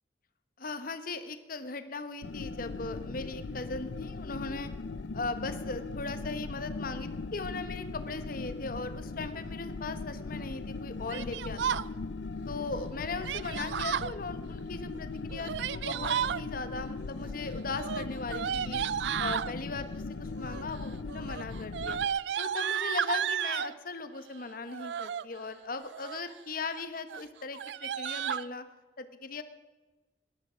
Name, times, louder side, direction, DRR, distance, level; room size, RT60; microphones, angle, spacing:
voice 1, 0.6-4.7 5.1-11.8 12.5-18.8 19.2-22.0 22.4-28.6 29.0-29.4, left 3 dB, 55° left, 10 dB, 1.0 m, -38 dB
sound 1, 2.2-22.1, left 3 dB, 80° left, 0.6 m, -39 dB
Yell, 11.1-11.9 13.2-14.1 15.3-16.4 17.7-19.5 20.4-20.8 21.1-23.7 24.7-25.2 25.8-26.3 26.7-26.8 27.1-27.2 27.5-28.4, right 9 dB, 80° right, 0.4 m, -33 dB
18.5 x 12.0 x 5.0 m, 1.2 s
head